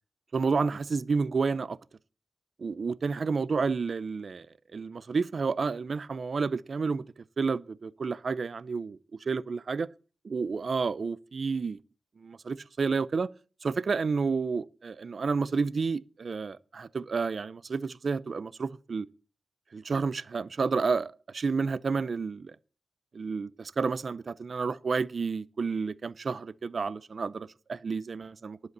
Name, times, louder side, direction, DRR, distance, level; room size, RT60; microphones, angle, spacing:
voice 1, 0.3-1.8 2.6-4.5 4.7-7.0 7.4-9.9 10.3-11.8 12.2-13.3 13.6-19.1 19.7-22.6 23.1-28.7, right 4 dB, 50° right, 0.5 m, -30 dB
11.0 x 8.0 x 6.7 m
wide cardioid pair, 130°, 0 cm